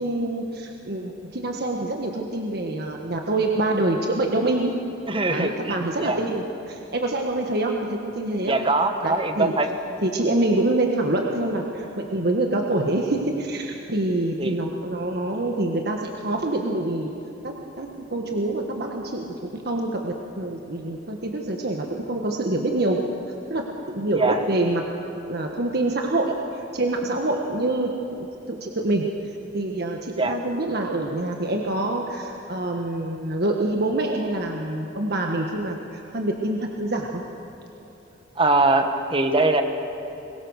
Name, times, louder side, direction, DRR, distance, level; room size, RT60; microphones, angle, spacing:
voice 1, 0.0-4.7 5.3-8.6 9.0-9.5 10.0-17.1 17.4-23.0 23.5-23.6 23.9-24.8 25.3-29.1 29.5-37.2, right 2 dB, 55° right, 1 dB, 1.5 m, -26 dB
voice 2, 5.1-6.2 8.4-9.7 14.4-14.6 24.1-24.4 30.2-30.4 38.4-39.6, right 2 dB, 30° right, 7 dB, 1.4 m, -22 dB
22.5 x 22.0 x 6.5 m, 2.9 s
head